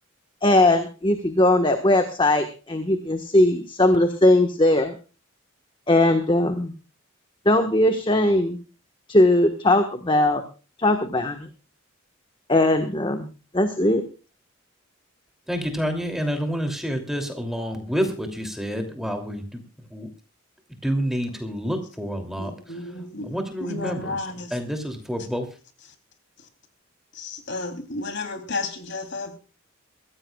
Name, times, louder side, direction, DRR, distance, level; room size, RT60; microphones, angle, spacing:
voice 1, 0.4-4.9 5.9-6.7 7.4-8.6 9.1-10.4 10.8-11.5 12.5-14.0, left 1 dB, 25° left, 1.4 m, -19 dB
voice 2, 15.5-19.6 19.9-20.1 20.8-22.5 23.3-24.1 24.5-25.4, equal, ahead, 2.8 m, -28 dB
voice 3, 22.4-23.3 23.6-24.5 27.1-29.4, left 3 dB, 55° left, 3.3 m, -32 dB
23.0 x 15.5 x 2.4 m
head